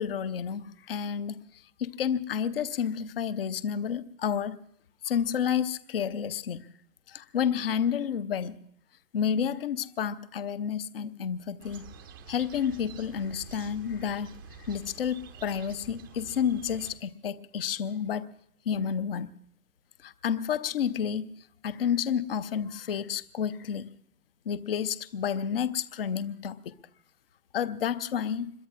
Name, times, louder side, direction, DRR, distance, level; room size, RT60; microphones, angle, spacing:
voice 1, 0.0-1.4 1.8-4.6 5.0-6.7 7.1-8.6 9.1-11.8 12.3-14.4 14.7-18.3 18.7-19.3 20.0-21.3 21.6-23.9 24.5-26.8 27.5-28.5, left 8 dB, 40° left, 0.6 m, -30 dB
sound 1, 11.6-16.9, right 5 dB, 15° right, 0.5 m, -48 dB
26.0 x 21.5 x 2.5 m
figure-of-eight pair, 130°, 46 cm